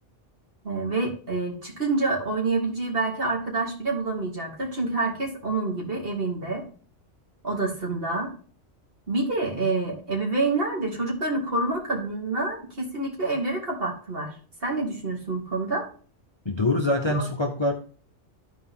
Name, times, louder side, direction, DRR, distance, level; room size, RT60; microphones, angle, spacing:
voice 1, 0.6-6.6 7.4-8.3 9.1-14.4 14.6-15.9 17.1-17.2, right 3 dB, 50° right, -1 dB, 2.7 m, -27 dB
voice 2, 16.4-17.7, left 2 dB, 25° left, 4 dB, 0.8 m, -24 dB
13.5 x 4.6 x 3.7 m, 0.42 s
omnidirectional pair, 1.2 m